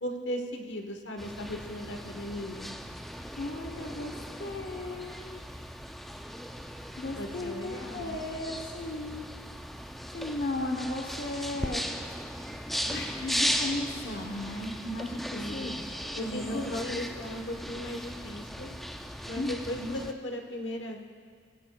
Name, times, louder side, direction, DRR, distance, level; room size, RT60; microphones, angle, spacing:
voice 1, 0.0-2.8 7.2-8.2 15.3-15.8 16.2-18.7 19.3-21.0, left 1 dB, 75° left, 3 dB, 1.1 m, -37 dB
sound 1, 1.2-20.1, equal, ahead, 0.4 m, -37 dB
voice 2, 3.4-5.4 7.0-9.3 10.1-11.8 12.5-15.8 16.2-17.0 19.4-20.0, left 2 dB, 55° left, 1 dB, 0.9 m, -36 dB
17.0 x 16.0 x 2.3 m, 2.1 s
head